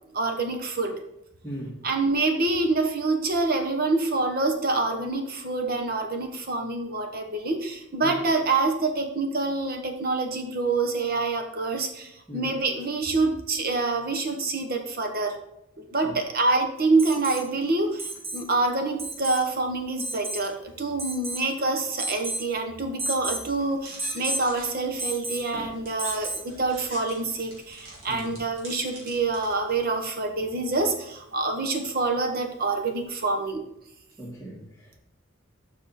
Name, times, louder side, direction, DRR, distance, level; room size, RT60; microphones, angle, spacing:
voice 1, 0.1-1.0 1.8-15.4 15.8-33.6, right 3 dB, 45° right, 4 dB, 1.1 m, -26 dB
voice 2, 1.4-1.8 8.0-8.2 12.3-12.5 16.0-16.2 28.1-28.3 34.2-35.0, right 1 dB, 5° left, -9 dB, 1.6 m, -38 dB
Alarm, 17.0-17.5 18.0-18.5 19.0-19.4 20.0-20.5 21.0-21.5 22.0-22.5 23.0-23.5 24.0-24.5 25.0-25.5 26.0-26.5 28.2-28.3, right 2 dB, 10° right, 0.6 m, -32 dB
sound 1, 23.6-29.8, right 1 dB, 75° right, 2.9 m, -45 dB
7.2 x 5.8 x 4.1 m, 0.81 s
head